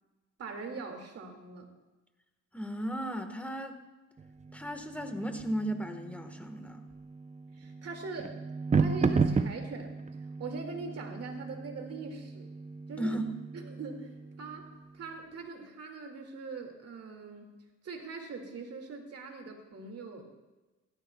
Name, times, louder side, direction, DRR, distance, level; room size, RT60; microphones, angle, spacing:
voice 1, 0.4-1.7 7.5-8.4 8.8-12.5 12.9-13.2 13.5-17.5 17.8-20.2, right 4 dB, 55° right, 3 dB, 2.2 m, -42 dB
voice 2, 2.5-3.8 4.5-6.8 13.0-13.3, right 1 dB, 5° left, 5 dB, 1.4 m, -35 dB
sound 1, 4.2-15.0, right 4 dB, 25° right, 0.6 m, -34 dB
16.5 x 13.0 x 2.3 m, 1.1 s
cardioid pair, 90°, 30 cm